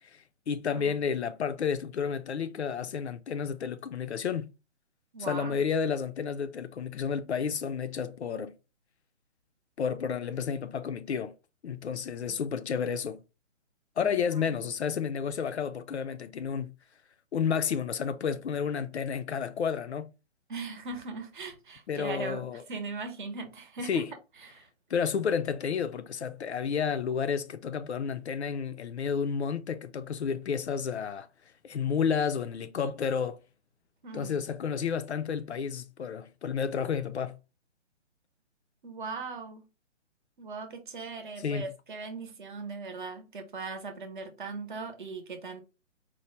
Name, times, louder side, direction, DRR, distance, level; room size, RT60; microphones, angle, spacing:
voice 1, 0.1-4.5 5.2-8.5 9.8-11.3 11.6-13.2 14.0-16.7 17.3-20.1 21.9-22.6 23.9-24.1 24.9-31.3 31.6-33.4 34.1-37.4 41.4-41.7, left 6 dB, 60° left, 0.5 m, -31 dB
voice 2, 5.1-5.6 14.0-14.2 14.5-14.7 20.5-24.1 24.4-24.7 34.0-34.3 38.8-39.6 40.4-45.6, right 4 dB, 40° right, 0.8 m, -39 dB
4.5 x 2.1 x 3.0 m
figure-of-eight pair, 135°, 37 cm